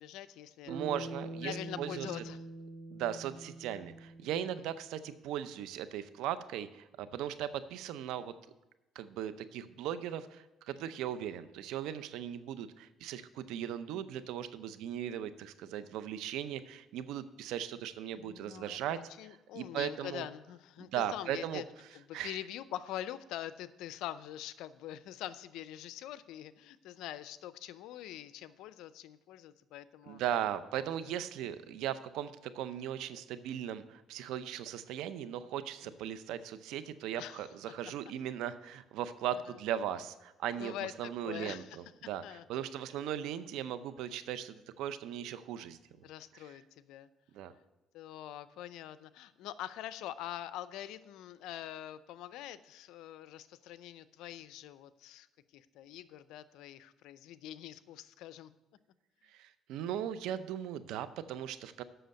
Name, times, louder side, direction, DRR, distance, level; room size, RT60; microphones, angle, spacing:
voice 1, 0.0-0.8 1.4-2.4 4.3-4.7 18.1-21.6 21.9-30.2 31.0-31.2 35.8-36.1 37.2-37.5 40.6-41.8 42.2-42.7 46.0-47.1 47.9-55.3 55.5-58.5, left 12 dB, 80° left, 15 dB, 0.5 m, -44 dB
Bass guitar, 0.7-5.1, right 2 dB, 65° right, 2.6 m, -45 dB
voice 2, 0.7-2.1 2.9-8.3 9.0-20.3 20.8-21.6 22.1-22.4 30.1-45.8 46.3-46.5 47.3-47.5 59.3-61.8, right 10 dB, 85° right, 13 dB, 0.6 m, -38 dB
7.8 x 6.3 x 7.9 m, 1.0 s
cardioid pair, 95°, 0 cm